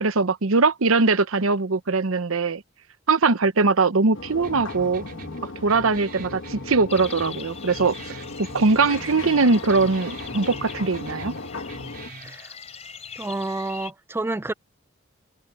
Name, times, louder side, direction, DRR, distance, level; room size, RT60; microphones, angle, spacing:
voice 1, 0.0-2.6 3.1-5.0 5.6-7.9 8.4-11.3, right 3 dB, 90° right, 0.9 m, -21 dB
sound 1, 4.1-12.1, left 3 dB, 65° left, 1.2 m, -37 dB
sound 2, 4.4-12.4, right 1 dB, 45° right, 4.8 m, -42 dB
sound 3, 6.9-13.9, left 6 dB, 35° left, 3.6 m, -42 dB
voice 2, 12.2-12.5 13.2-14.5, right 2 dB, 10° right, 0.3 m, -29 dB
head